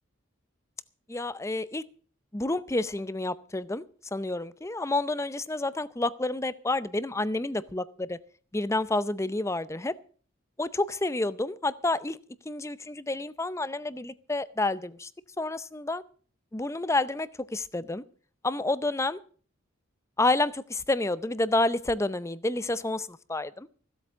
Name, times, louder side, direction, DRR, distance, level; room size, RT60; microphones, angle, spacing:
voice 1, 1.1-1.8 2.3-3.8 4.1-8.2 8.5-9.9 10.6-12.2 12.5-15.1 15.4-16.0 16.5-18.0 18.4-19.2 20.2-23.7, left 2 dB, 15° left, 16 dB, 0.6 m, -29 dB
16.0 x 8.0 x 7.4 m, 0.43 s
head